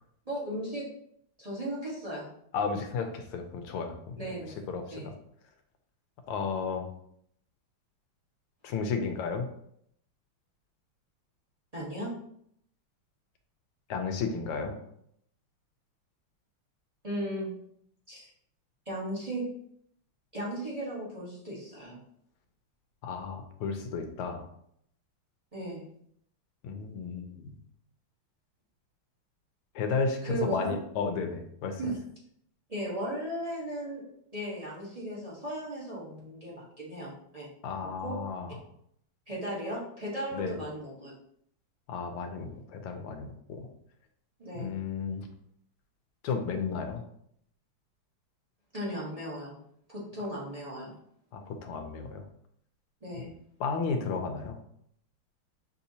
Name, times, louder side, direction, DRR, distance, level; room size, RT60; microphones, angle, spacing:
voice 1, 0.3-0.9 1.4-2.3 4.2-4.5 4.9-5.1 11.7-12.2 17.0-17.5 18.1-18.3 18.9-19.5 20.3-22.0 25.5-25.9 30.2-30.7 31.8-32.0 32.7-34.0 34.3-37.5 37.8-38.2 39.3-41.1 44.4-44.7 48.7-49.6 49.9-50.9 53.0-53.3, right 1 dB, 25° right, -6 dB, 0.8 m, -36 dB
voice 2, 2.5-4.2 4.7-5.1 6.3-6.9 8.6-9.5 13.9-14.8 23.0-24.5 26.6-27.5 29.8-31.8 37.6-38.6 40.3-40.6 41.9-43.7 44.5-45.3 46.2-47.0 51.3-52.3 53.2-53.3 53.6-54.6, left 5 dB, 85° left, 5 dB, 1.6 m, -33 dB
6.4 x 2.8 x 2.7 m, 0.69 s
omnidirectional pair, 2.4 m